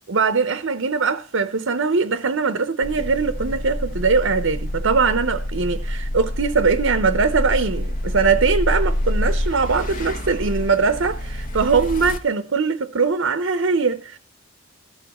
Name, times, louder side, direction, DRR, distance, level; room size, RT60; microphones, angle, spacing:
voice 1, 0.1-14.2, right 4 dB, 70° right, 0.7 m, -21 dB
sound 1, 2.8-12.2, equal, 40° left, 1.1 m, -26 dB
18.5 x 7.1 x 3.0 m
head